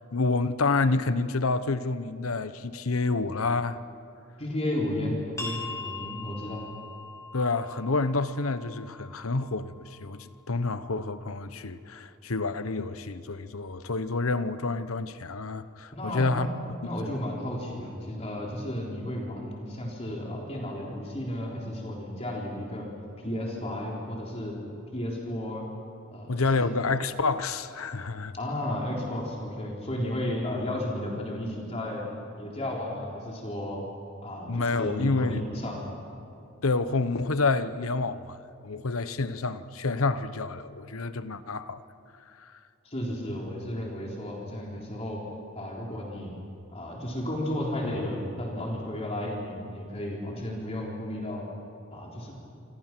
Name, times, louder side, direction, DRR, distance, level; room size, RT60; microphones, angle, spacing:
voice 1, 0.0-3.8 7.3-16.5 17.0-17.2 26.3-28.3 34.5-35.4 36.6-38.4 38.6-41.8 42.4-42.5, left 3 dB, 85° left, 1.0 m, -28 dB
voice 2, 4.4-6.6 15.9-16.5 16.8-22.9 23.2-24.6 24.9-25.6 26.1-26.3 26.6-26.7 28.3-32.0 32.3-33.8 34.2-35.8 42.8-45.3 45.5-46.4 46.7-51.5 51.9-52.3, left 1 dB, 30° left, 3.9 m, -33 dB
sound 1, 5.4-10.7, left 3 dB, 15° left, 3.9 m, -42 dB
28.0 x 26.5 x 6.1 m
head